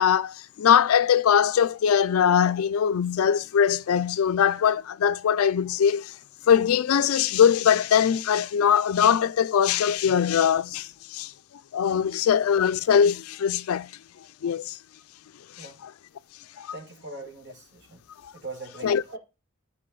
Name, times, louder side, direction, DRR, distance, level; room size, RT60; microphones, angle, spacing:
voice 1, 0.0-6.1 6.5-11.3 11.7-13.9 14.4-14.8 15.6-15.9 16.6-16.8 18.8-19.2, left 8 dB, 75° left, 0.4 m, -22 dB
voice 2, 16.7-18.0 18.3-19.2, right 3 dB, 55° right, 2.3 m, -41 dB
11.5 x 4.8 x 3.8 m
head